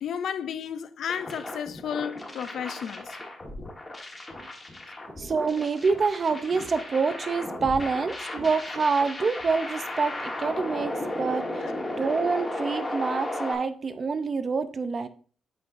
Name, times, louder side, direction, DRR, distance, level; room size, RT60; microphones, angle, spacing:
voice 1, 0.0-3.2 11.6-11.7, left 8 dB, 65° left, 0.4 m, -33 dB
sound 1, 1.1-13.5, left 1 dB, 20° left, 1.3 m, -35 dB
voice 2, 5.2-10.9 11.2-11.7 12.0-15.1, right 4 dB, 35° right, 0.5 m, -26 dB
8.2 x 5.3 x 2.5 m
wide cardioid pair, 160°, 0 cm